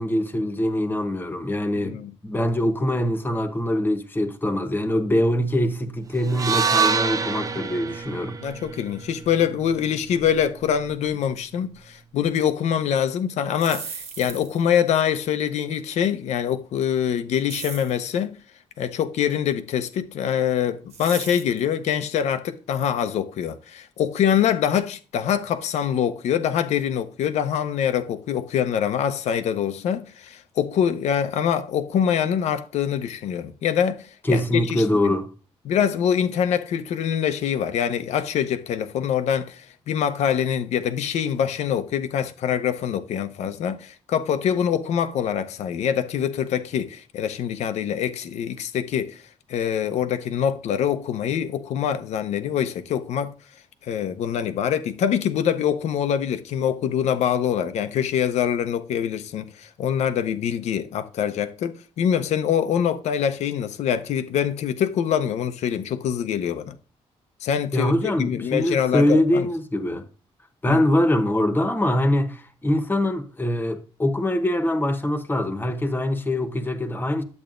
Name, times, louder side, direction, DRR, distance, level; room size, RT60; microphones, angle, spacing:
voice 1, 0.0-8.4 34.2-35.3 67.7-70.1 70.6-77.2, left 1 dB, 20° left, 1.0 m, -23 dB
voice 2, 1.7-2.1 8.4-18.3 18.8-35.1 35.7-49.2 49.5-53.3 53.8-66.8 67.4-69.5 70.7-70.8, left 8 dB, 90° left, 0.7 m, -24 dB
sound 1, 6.3-10.5, right 6 dB, 30° right, 0.5 m, -26 dB
sound 2, 13.4-14.7 17.5-18.0 20.9-21.6, right 6 dB, 75° right, 1.4 m, -36 dB
11.0 x 8.0 x 2.5 m
cardioid pair, 115°, 11 cm